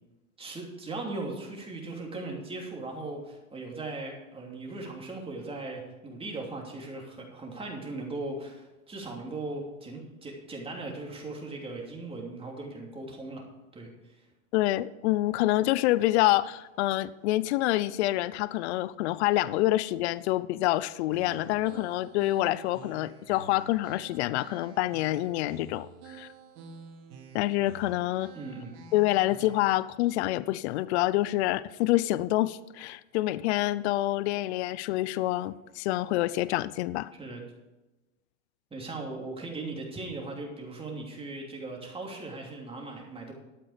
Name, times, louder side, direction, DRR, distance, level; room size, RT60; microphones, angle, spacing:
voice 1, 0.4-13.4 13.7-14.2 28.3-28.7 37.1-37.4 38.7-43.3, right 2 dB, 15° right, 0 dB, 3.0 m, -38 dB
voice 2, 14.5-26.3 27.3-28.3 28.9-37.1, left 16 dB, 55° left, 17 dB, 0.6 m, -27 dB
sound 1, 21.1-29.8, right 5 dB, 55° right, 3.1 m, -49 dB
12.5 x 8.7 x 5.1 m, 1.0 s
hypercardioid pair, 120°, 40 cm